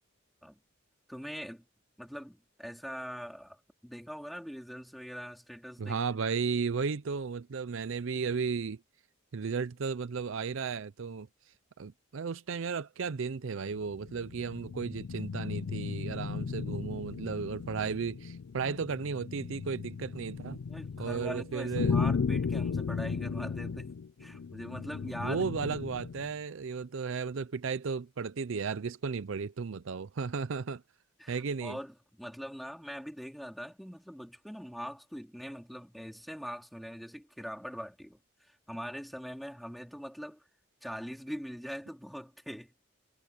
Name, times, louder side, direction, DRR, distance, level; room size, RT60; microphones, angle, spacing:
voice 1, 1.1-1.7 2.0-6.0 20.7-25.4 31.2-38.2 38.5-40.4 40.8-42.7, equal, ahead, 3.7 m, -42 dB
voice 2, 5.8-8.8 9.3-11.3 11.8-20.6 21.0-22.0 25.2-30.8 31.3-31.8, right 5 dB, 65° right, 0.5 m, -34 dB
sound 1, 13.7-26.3, left 5 dB, 75° left, 0.4 m, -35 dB
head